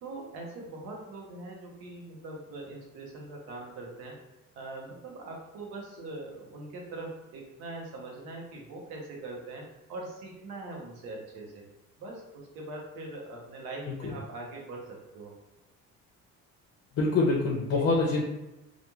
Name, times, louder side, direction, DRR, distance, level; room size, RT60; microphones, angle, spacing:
voice 1, 0.0-4.1 4.5-9.6 9.9-11.6 12.0-15.3 17.7-17.8, right 2 dB, 85° right, -2 dB, 0.9 m, -42 dB
voice 2, 17.0-18.2, left 3 dB, 40° left, -2 dB, 0.6 m, -25 dB
2.4 x 2.2 x 3.0 m, 0.99 s
supercardioid pair, 75°, 35 cm